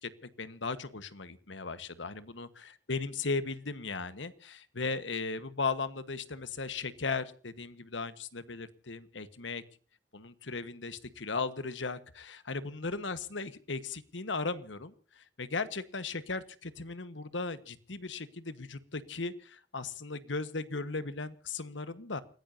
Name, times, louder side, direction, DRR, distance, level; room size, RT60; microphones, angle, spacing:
voice 1, 0.0-9.6 10.1-22.2, left 4 dB, 90° left, 13 dB, 1.4 m, -37 dB
29.5 x 16.0 x 2.8 m, 0.40 s
head